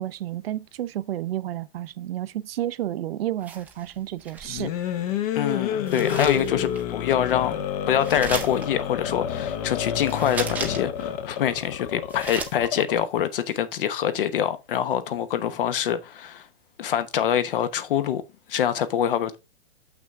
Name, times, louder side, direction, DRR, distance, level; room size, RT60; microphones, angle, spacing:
voice 1, 0.0-4.7, right 13 dB, 70° right, 0.7 m, -31 dB
sound 1, 3.4-4.8 5.9-6.9 8.0-8.6 10.0-11.0 11.4-11.5 11.9-12.6, right 5 dB, 5° right, 0.5 m, -35 dB
sound 2, 4.4-13.2, left 9 dB, 40° left, 0.8 m, -29 dB
voice 2, 5.3-16.5 16.8-18.2 18.5-19.4, left 9 dB, 60° left, 1.1 m, -25 dB
6.8 x 6.0 x 3.5 m
hypercardioid pair, 160°, 30 cm